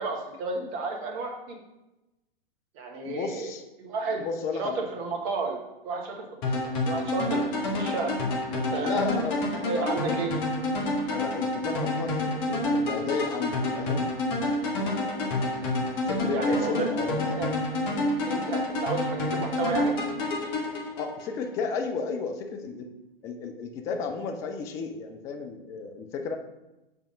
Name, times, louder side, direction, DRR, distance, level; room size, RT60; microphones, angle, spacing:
voice 1, 0.0-1.6 2.7-3.5 3.8-4.2 4.6-5.6 5.8-7.4 7.7-8.1 8.5-9.0 9.6-10.3 16.3-16.9 17.1-17.5 18.2-20.0, right 3 dB, 30° right, 2 dB, 1.3 m, -32 dB
voice 2, 3.1-3.6 4.2-4.8 8.8-9.4 9.8-9.9 11.1-14.1 16.1-17.4 21.0-22.9 23.2-26.4, left 5 dB, 10° left, 5 dB, 0.3 m, -33 dB
sound 1, 6.4-21.5, left 1 dB, 35° left, 1.5 m, -28 dB
7.1 x 3.5 x 5.1 m, 0.98 s
figure-of-eight pair, 110°, 29 cm